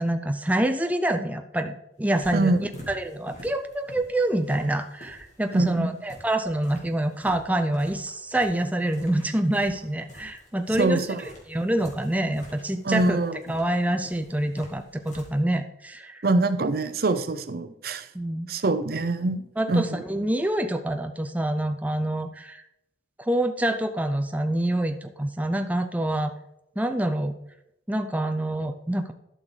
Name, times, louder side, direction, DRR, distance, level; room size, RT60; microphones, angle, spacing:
voice 1, 0.0-11.0 11.5-13.2 13.5-16.2 18.1-18.5 19.6-22.6 23.2-26.3 26.8-27.3 27.9-29.1, right 1 dB, 10° right, 6 dB, 0.5 m, -26 dB
sound 1, 2.0-15.4, left 1 dB, 45° left, 2.8 m, -47 dB
voice 2, 5.5-5.9 10.8-11.3 12.8-13.4 16.2-18.1 18.5-20.0, right 2 dB, 55° right, 11 dB, 0.7 m, -24 dB
12.0 x 6.3 x 3.9 m, 0.83 s
head